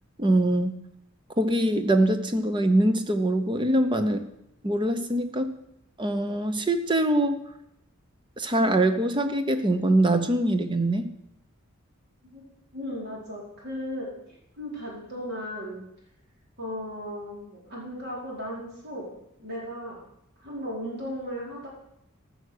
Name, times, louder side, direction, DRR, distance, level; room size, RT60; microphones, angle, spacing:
voice 1, 0.2-0.8 1.4-4.2 4.6-5.5 6.0-7.4 8.4-11.1, right 1 dB, 20° right, 9 dB, 0.8 m, -23 dB
voice 2, 12.7-14.1 14.6-15.8 16.6-19.1 19.4-20.0 20.4-21.7, equal, 50° right, -4 dB, 4.7 m, -36 dB
14.0 x 6.5 x 6.6 m, 0.81 s
head